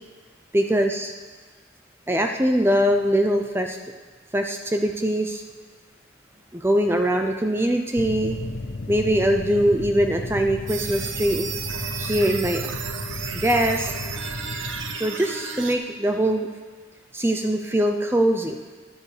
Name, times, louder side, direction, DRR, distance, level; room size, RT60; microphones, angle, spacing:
voice 1, 0.5-1.1 2.1-3.8 4.3-5.4 6.5-8.4 8.9-11.5 12.0-12.7 13.3-13.9 15.0-16.5 17.1-18.6, right 1 dB, 10° right, 4 dB, 0.6 m, -22 dB
sound 1, 8.0-15.0, left 2 dB, 60° left, 0.6 m, -34 dB
sound 2, 10.7-15.7, right 6 dB, 80° right, 1.0 m, -33 dB
14.0 x 10.5 x 5.0 m, 1.4 s
head